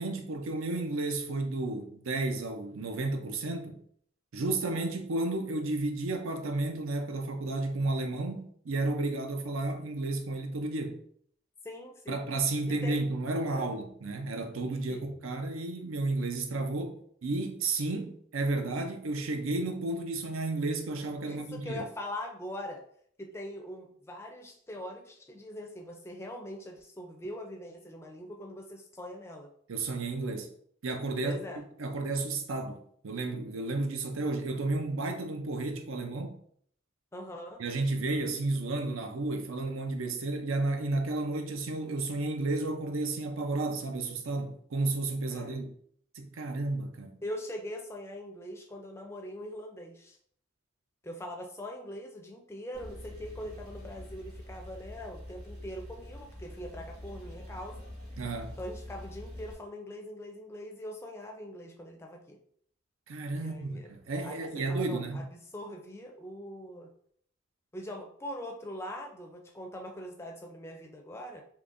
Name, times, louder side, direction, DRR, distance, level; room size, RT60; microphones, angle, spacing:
voice 1, 0.0-3.8 4.3-11.0 12.1-17.0 17.2-21.8 29.7-30.5 30.8-31.4 31.8-36.4 37.6-45.7 46.2-47.2 58.2-58.6 63.1-65.3, right 2 dB, 90° right, 0.5 m, -32 dB
voice 2, 11.6-12.2 12.7-13.0 13.5-13.7 14.9-15.0 21.3-22.8 23.2-29.5 31.2-31.6 37.1-37.6 45.3-45.6 47.2-50.2 51.0-57.9 58.6-62.4 63.3-63.9 64.2-66.9 67.7-71.4, left 1 dB, 15° left, 0.4 m, -42 dB
Male speech man speaking / Car / Idling, 52.7-59.5, left 1 dB, 50° right, 1.4 m, -45 dB
3.8 x 2.9 x 2.5 m
head